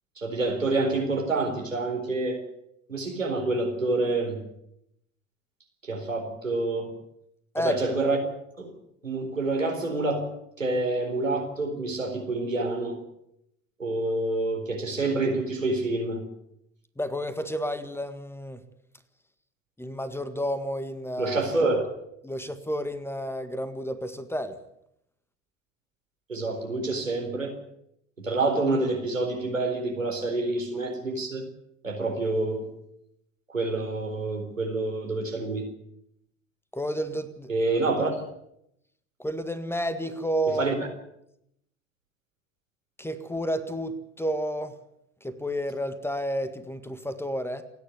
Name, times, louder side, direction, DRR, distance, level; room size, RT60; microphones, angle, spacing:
voice 1, 0.2-2.4 2.9-4.4 5.8-6.9 7.6-8.2 8.6-8.7 9.0-10.3 10.6-13.0 13.8-16.3 21.2-21.8 26.3-27.5 28.2-31.5 31.8-32.7 33.5-35.6 37.5-38.1 40.6-40.7, right 2 dB, 85° right, 2 dB, 4.3 m, -27 dB
voice 2, 17.0-18.6 19.8-21.7 22.2-24.6 36.7-37.5 39.2-40.7 43.0-44.8 45.2-47.6, equal, 5° left, 12 dB, 1.7 m, -31 dB
28.5 x 10.0 x 9.5 m, 0.79 s
figure-of-eight pair, 70°, 38 cm